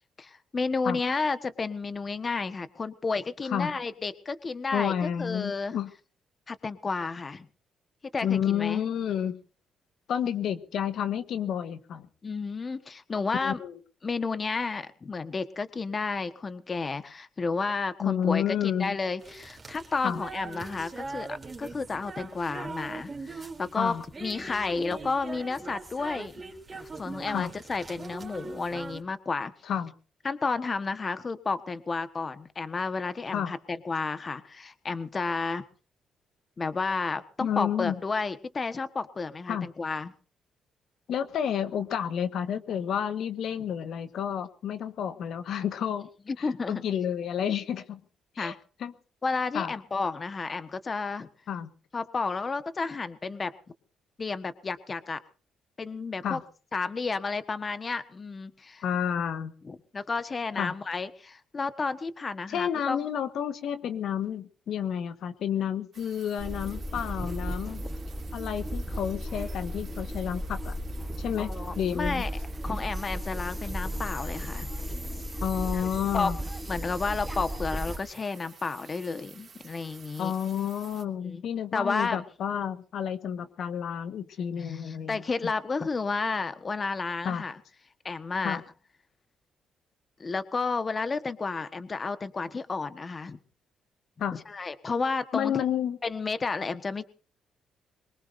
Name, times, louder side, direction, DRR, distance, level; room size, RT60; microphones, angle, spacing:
voice 1, 0.2-5.8 6.5-7.5 8.1-8.8 12.2-13.6 14.0-26.3 26.7-29.5 30.2-35.6 36.6-40.1 46.3-46.8 48.4-48.6 49.2-51.3 51.9-53.5 54.2-55.2 55.8-56.4 56.7-58.8 59.7-63.0 67.3-67.4 67.8-67.9 71.4-72.3 72.6-74.7 75.7-75.8 76.1-76.3 76.7-80.3 81.2-81.4 81.7-82.2 84.6-87.6 88.0-88.6 90.2-93.4 94.5-95.6 96.0-97.1, left 4 dB, 35° left, 11 dB, 1.3 m, -31 dB
voice 2, 4.7-5.9 8.2-9.4 10.1-12.1 13.4-13.8 18.0-18.9 20.0-20.2 23.8-24.0 27.3-27.5 29.7-29.9 33.3-33.5 37.4-37.9 39.5-39.7 41.1-46.1 46.4-48.0 48.3-48.5 48.8-48.9 49.5-49.7 51.5-51.7 56.2-56.4 58.8-59.5 60.6-60.7 62.5-67.8 68.3-70.8 71.2-72.2 75.4-76.4 80.2-85.5 87.2-87.4 88.4-88.6 94.2-94.4 95.3-96.0, left 8 dB, 70° left, 10 dB, 1.5 m, -30 dB
sound 1, 19.2-29.0, right 3 dB, 30° right, 3.4 m, -41 dB
sound 2, 65.9-81.0, right 6 dB, 45° right, 3.0 m, -52 dB
sound 3, 66.4-78.0, equal, 10° right, 1.2 m, -35 dB
23.0 x 21.5 x 2.7 m, 0.39 s
cardioid pair, 90°, 0 cm